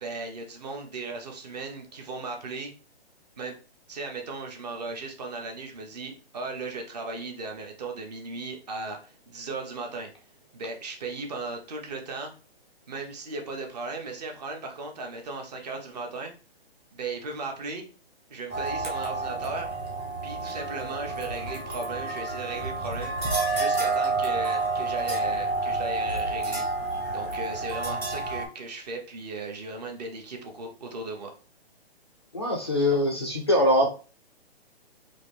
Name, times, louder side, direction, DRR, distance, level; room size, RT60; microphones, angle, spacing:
voice 1, 0.0-2.7 3.4-3.5 3.9-10.1 10.5-12.3 12.9-16.3 16.9-17.9 18.3-19.7 20.2-23.1 23.5-26.6 27.1-31.3 32.9-33.0, right 3 dB, 40° right, 3 dB, 1.0 m, -36 dB
sound 1, 18.5-28.4, right 3 dB, 15° right, 0.7 m, -29 dB
voice 2, 32.3-33.9, left 1 dB, 25° left, 1 dB, 0.4 m, -23 dB
3.8 x 2.6 x 3.3 m, 0.36 s
hypercardioid pair, 165°, 32 cm